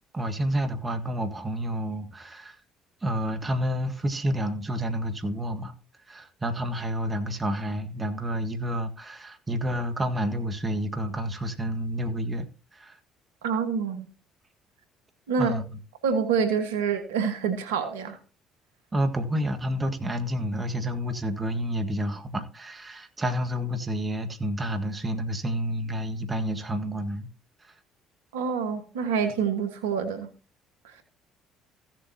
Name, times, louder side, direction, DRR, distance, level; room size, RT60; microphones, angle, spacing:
voice 1, 0.1-2.6 3.0-5.7 6.1-12.5 12.7-13.0 15.4-15.8 18.9-27.3 27.6-27.7, equal, 25° right, 1.6 m, -29 dB
voice 2, 13.4-14.1 15.3-15.5 16.0-18.2 28.3-30.3 30.8-31.0, right 6 dB, 85° right, 1.4 m, -27 dB
15.5 x 7.6 x 2.8 m
hypercardioid pair, 60°, 0 cm